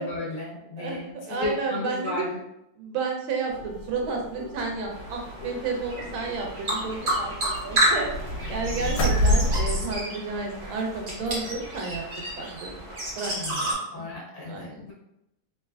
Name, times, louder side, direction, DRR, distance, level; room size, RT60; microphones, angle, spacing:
voice 1, 0.0-2.4 8.6-9.0 13.3-14.9, left 2 dB, 55° left, -5 dB, 0.9 m, -34 dB
voice 2, 0.8-2.3 2.8-12.0 12.4-12.9 13.1-14.0 14.5-14.8, right 4 dB, 85° right, 1 dB, 1.4 m, -32 dB
sound 1, 3.5-10.0, left 1 dB, 75° left, 1.2 m, -29 dB
sound 2, 4.9-13.7, right 1 dB, 60° right, 0.5 m, -30 dB
3.2 x 2.9 x 2.3 m, 0.84 s
omnidirectional pair, 2.2 m